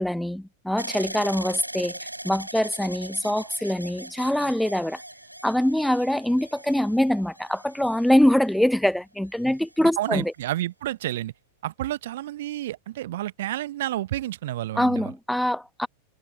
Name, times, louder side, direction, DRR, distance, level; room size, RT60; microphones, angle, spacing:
voice 1, 0.0-5.0 5.4-10.3 14.8-15.9, left 1 dB, ahead, 1.0 m, -24 dB
sound 1, 0.8-8.8 9.5-10.1, right 1 dB, 85° right, 5.3 m, -40 dB
voice 2, 10.0-11.3 11.6-15.1, right 14 dB, 55° right, 1.2 m, -30 dB
figure-of-eight pair, 90°, 0 cm